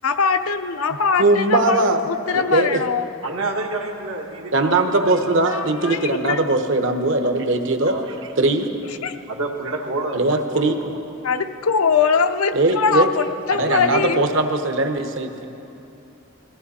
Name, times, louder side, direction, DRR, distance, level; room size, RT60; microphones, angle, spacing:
voice 1, 0.0-3.0 5.5-6.5 9.0-9.1 11.2-14.2, left 5 dB, 85° left, 8 dB, 0.6 m, -22 dB
voice 2, 1.2-2.0 2.3-2.8 4.5-7.9 8.4-8.8 10.1-10.8 12.5-13.1 13.6-15.5, right 2 dB, 60° right, 6 dB, 1.0 m, -20 dB
voice 3, 3.2-5.1 5.8-6.0 7.8-8.1 9.3-11.0, right 2 dB, 80° right, 1 dB, 1.6 m, -29 dB
20.5 x 14.5 x 4.2 m, 2.9 s
head